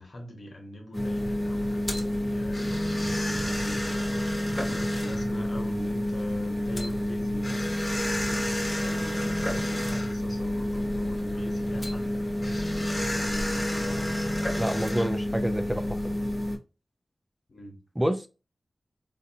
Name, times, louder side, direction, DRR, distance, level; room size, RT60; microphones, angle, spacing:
voice 1, 0.0-8.4 8.7-14.3 17.5-17.8, left 1 dB, 65° left, 1.0 m, -43 dB
sound 1, 0.9-16.6, left 1 dB, 20° left, 1.0 m, -29 dB
voice 2, 14.6-16.2 18.0-18.3, equal, 10° right, 0.4 m, -28 dB
3.8 x 2.3 x 2.7 m
wide cardioid pair, 80°, 0 cm